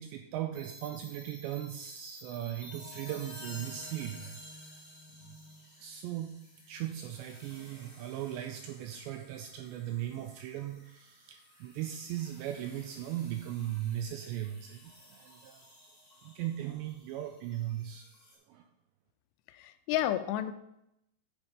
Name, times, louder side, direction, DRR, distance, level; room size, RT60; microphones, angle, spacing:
voice 1, 0.0-4.8 5.2-5.4 5.8-6.3 6.7-15.6 16.2-18.1 18.5-18.6, right 12 dB, 85° right, 5 dB, 2.5 m, -38 dB
sound 1, 0.5-18.3, left 1 dB, 20° left, 4.1 m, -53 dB
voice 2, 19.5-20.5, left 12 dB, 90° left, 9 dB, 3.1 m, -31 dB
8.8 x 5.9 x 5.2 m, 0.82 s
omnidirectional pair, 5.5 m